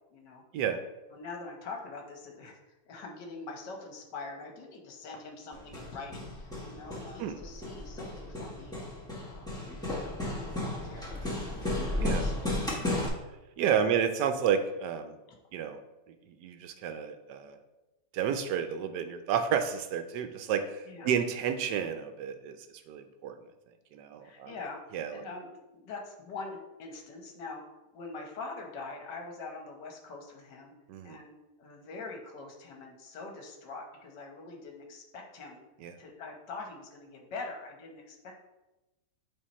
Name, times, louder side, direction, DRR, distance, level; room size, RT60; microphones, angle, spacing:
voice 1, 0.1-0.4 1.1-8.7 9.2-9.5 9.9-11.6 12.2-12.6 13.7-13.9 20.9-21.1 24.2-27.6 27.9-30.7 31.0-31.3 31.6-35.6 36.0-38.4, left 3 dB, 75° left, 2 dB, 1.6 m, -44 dB
Hammer, 5.5-13.1, left 1 dB, 5° left, 0.9 m, -34 dB
voice 2, 11.9-12.3 13.6-15.1 15.5-15.8 16.4-17.6 18.1-22.6 22.9-23.3 23.9-24.5 24.9-25.2 30.9-31.2 35.8-35.9, right 8 dB, 75° right, 8 dB, 1.1 m, -31 dB
8.4 x 3.0 x 4.2 m, 1.0 s
omnidirectional pair, 1.9 m